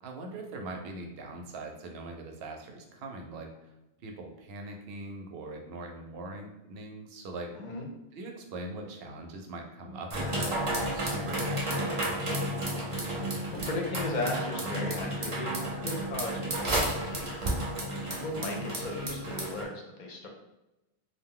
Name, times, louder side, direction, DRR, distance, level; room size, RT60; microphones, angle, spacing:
voice 1, 0.0-3.7 4.0-7.5 8.1-10.6 10.9-12.7, right 2 dB, 70° right, 3 dB, 0.8 m, -42 dB
voice 2, 7.5-7.8 13.5-17.8 18.0-20.3, left 1 dB, 55° left, 1 dB, 0.6 m, -36 dB
sound 1, 10.1-19.6, right 1 dB, 40° right, 0.5 m, -32 dB
2.5 x 2.1 x 3.6 m, 0.94 s
omnidirectional pair, 1.1 m